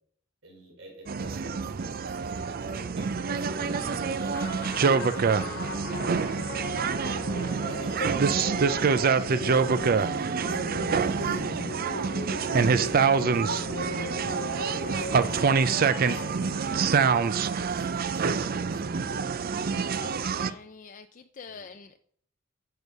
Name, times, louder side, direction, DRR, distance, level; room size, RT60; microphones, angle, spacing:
voice 1, 0.4-11.4 11.9-15.4 16.0-19.1 21.5-21.6, right 1 dB, 75° right, 1 dB, 4.1 m, -48 dB
sound 1, 1.1-20.5, right 5 dB, 50° right, 0.5 m, -26 dB
Wind instrument woodwind instrument, 3.5-8.7, left 2 dB, 10° left, 0.8 m, -45 dB
sound 2, 4.3-16.9, left 2 dB, 60° left, 1.3 m, -38 dB
voice 2, 20.0-22.0, left 5 dB, 40° left, 7 dB, 0.5 m, -46 dB
11.0 x 6.8 x 5.3 m, 0.62 s
head